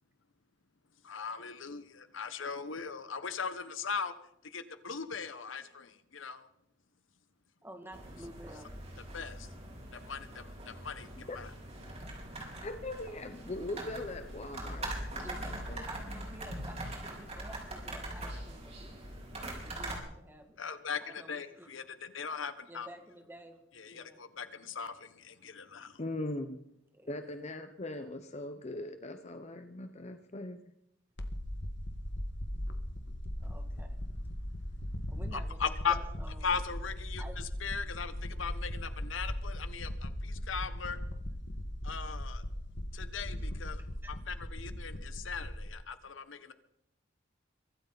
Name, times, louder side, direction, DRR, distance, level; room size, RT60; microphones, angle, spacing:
voice 1, 1.0-4.1 4.4-6.5 9.1-9.5 10.0-11.5 20.6-22.9 23.8-26.0 35.3-36.0 36.4-37.2 37.6-41.0 41.8-42.5 42.9-43.8 44.1-46.5, left 6 dB, 85° left, 11 dB, 1.2 m, -39 dB
voice 2, 7.6-8.7 15.1-19.0 19.6-20.6 21.0-21.7 22.7-23.6 23.9-24.2 26.9-27.2 27.9-28.0 33.4-34.0 35.1-36.5 37.2-37.4 43.4-44.1, right 1 dB, 10° right, 4 dB, 2.3 m, -51 dB
sound 1, 7.9-20.0, right 1 dB, 35° right, 4.4 m, -42 dB
voice 3, 12.6-16.2 26.0-26.6 27.1-30.6, left 2 dB, 35° left, 8 dB, 0.9 m, -40 dB
sound 2, 31.2-45.7, equal, 65° left, 1.7 m, -39 dB
23.5 x 13.5 x 4.1 m, 0.77 s
head